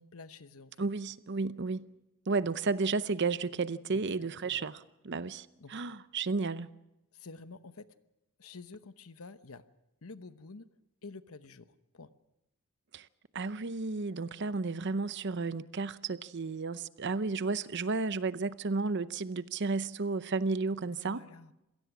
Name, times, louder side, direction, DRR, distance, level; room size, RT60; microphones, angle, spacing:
voice 1, 0.0-0.9 3.9-4.0 4.4-4.6 5.6-5.7 7.1-7.9 8.4-9.6 10.0-10.7 11.0-12.1 21.0-21.5, left 3 dB, 75° left, 1.0 m, -49 dB
voice 2, 0.8-1.9 2.3-6.7 12.9-13.1 13.3-21.2, right 4 dB, 55° right, 0.7 m, -33 dB
26.5 x 17.5 x 6.1 m
head